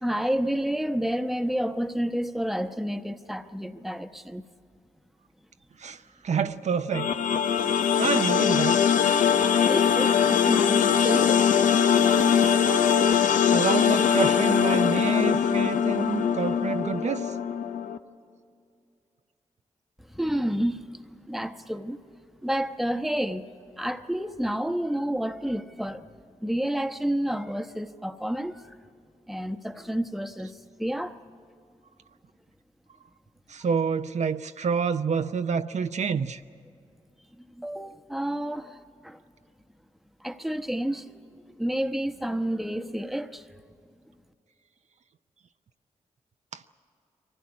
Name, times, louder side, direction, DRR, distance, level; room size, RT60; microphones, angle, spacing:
voice 1, 0.0-4.4 7.5-7.6 9.7-11.4 20.1-22.0 22.4-23.5 23.8-26.1 26.4-28.7 29.3-31.2 37.6-39.2 40.2-41.3 41.6-43.4, equal, ahead, 1.0 m, -30 dB
voice 2, 5.8-7.1 8.0-8.8 13.5-17.3 33.5-36.4 46.5-46.6, right 6 dB, 65° right, 0.6 m, -28 dB
sound 1, 6.9-18.0, left 7 dB, 90° left, 0.6 m, -22 dB
23.0 x 15.5 x 9.7 m
cardioid pair, 50°, 13 cm